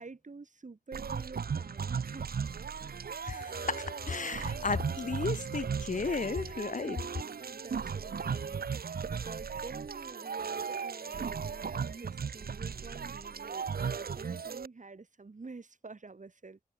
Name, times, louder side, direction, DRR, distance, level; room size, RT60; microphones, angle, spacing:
voice 1, 0.0-2.4 6.8-16.6, right 3 dB, 55° right, 8.0 m, -49 dB
sound 1, 0.9-14.7, right 6 dB, 80° right, 1.3 m, -36 dB
voice 2, 3.2-7.0, left 4 dB, 55° left, 1.2 m, -34 dB
wide cardioid pair, 60°, 15 cm